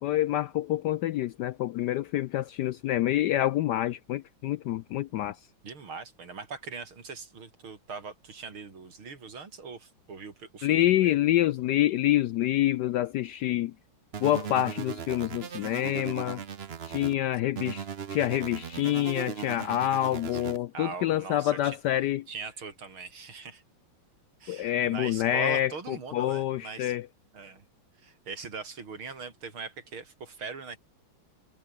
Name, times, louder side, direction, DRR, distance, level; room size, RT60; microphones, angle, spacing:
voice 1, 0.0-5.4 10.6-13.7 14.2-16.4 16.8-22.3 24.5-27.1, left 13 dB, 75° left, 1.0 m, -27 dB
voice 2, 5.6-11.1 17.4-17.8 20.3-20.4 20.7-21.8 22.3-23.6 24.4-26.9 27.3-27.6 28.0-30.8, right 5 dB, 80° right, 4.3 m, -41 dB
sound 1, 14.1-17.1 17.6-20.6, right 7 dB, 45° right, 0.8 m, -38 dB
omnidirectional pair, 2.2 m